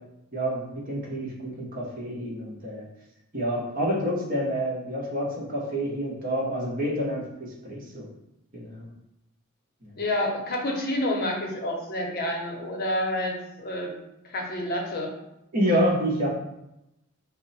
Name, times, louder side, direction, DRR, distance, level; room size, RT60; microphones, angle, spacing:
voice 1, 0.3-2.9 3.3-8.1 8.5-8.9 15.5-16.3, equal, 40° right, -3 dB, 1.0 m, -28 dB
voice 2, 10.0-14.0 14.2-15.1, left 1 dB, 45° left, 0 dB, 0.8 m, -29 dB
5.2 x 2.1 x 4.0 m, 0.87 s
head